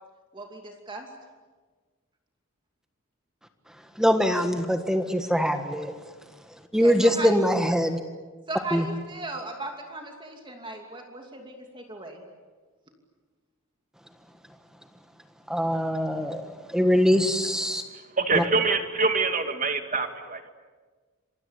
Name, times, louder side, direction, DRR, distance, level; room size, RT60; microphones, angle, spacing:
voice 1, 0.3-1.1 6.8-7.4 8.5-12.2, right 2 dB, 20° right, 3 dB, 2.7 m, -37 dB
voice 2, 3.7-6.1 6.5-8.0 8.7-8.8 15.5-17.8 18.3-18.4, equal, 5° right, 7 dB, 1.4 m, -23 dB
voice 3, 18.2-20.5, right 4 dB, 40° right, 7 dB, 2.2 m, -25 dB
27.5 x 24.0 x 8.3 m, 1.4 s
head